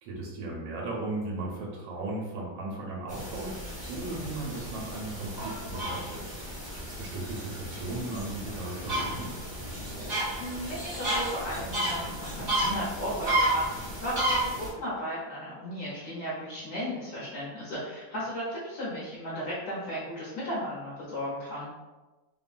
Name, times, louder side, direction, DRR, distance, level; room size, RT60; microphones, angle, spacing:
voice 1, 0.0-6.2 7.0-9.4, right 2 dB, 85° right, -3 dB, 1.4 m, -36 dB
sound 1, 3.1-14.7, right 1 dB, 35° right, 0.6 m, -32 dB
voice 2, 10.4-21.7, equal, 60° left, -9 dB, 1.2 m, -35 dB
3.3 x 2.1 x 2.4 m, 1.1 s
omnidirectional pair, 2.1 m